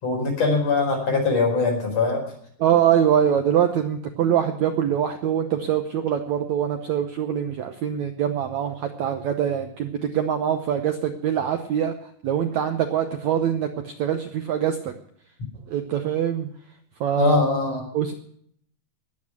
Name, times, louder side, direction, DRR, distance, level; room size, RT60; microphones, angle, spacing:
voice 1, 0.0-2.3 17.2-17.8, left 4 dB, 40° left, 0 dB, 5.9 m, -22 dB
voice 2, 2.6-11.9 12.2-14.9 15.7-16.5 17.0-17.4 17.9-18.1, right 9 dB, 85° right, 7 dB, 1.6 m, -23 dB
20.5 x 8.6 x 6.1 m, 0.67 s
omnidirectional pair, 4.6 m